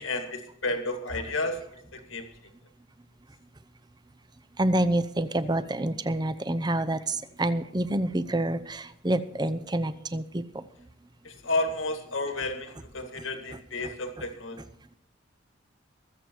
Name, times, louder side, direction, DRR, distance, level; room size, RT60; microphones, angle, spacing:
voice 1, 0.0-1.6 1.9-2.3 11.2-14.6, left 2 dB, 85° left, 6 dB, 2.1 m, -31 dB
voice 2, 4.6-10.4, right 1 dB, 20° right, 12 dB, 0.7 m, -27 dB
23.5 x 8.0 x 4.6 m, 0.74 s
head